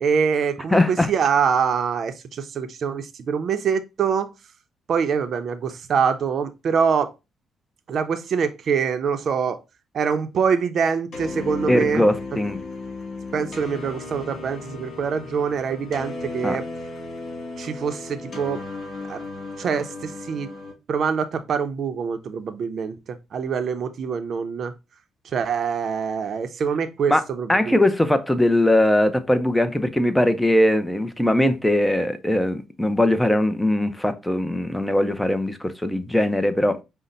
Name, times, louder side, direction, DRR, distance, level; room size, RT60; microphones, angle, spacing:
voice 1, 0.0-4.3 4.9-7.1 7.9-9.6 9.9-12.1 13.3-16.6 17.6-18.6 19.1-19.2 19.6-20.5 20.9-24.7 25.3-27.8, right 6 dB, 55° right, 0.6 m, -24 dB
voice 2, 0.7-1.1 11.7-12.6 16.4-16.6 27.1-27.2 27.5-36.8, left 1 dB, 5° left, 0.6 m, -20 dB
sound 1, 11.1-20.7, left 3 dB, 55° left, 1.9 m, -35 dB
5.3 x 2.1 x 3.9 m
cardioid pair, 90°, 0 cm